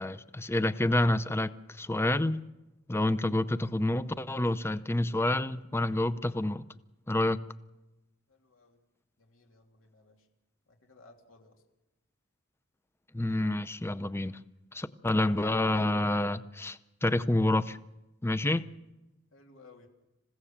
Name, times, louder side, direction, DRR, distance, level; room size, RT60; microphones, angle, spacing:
voice 1, 0.0-1.5 1.8-2.5 2.9-6.6 7.1-7.4 13.1-14.4 14.7-17.8 18.2-18.7, left 1 dB, 10° left, 14 dB, 0.7 m, -28 dB
voice 2, 9.3-10.1 10.9-11.5 19.3-19.9, left 3 dB, 80° left, 2 dB, 3.0 m, -57 dB
27.5 x 16.0 x 7.3 m, 0.99 s
head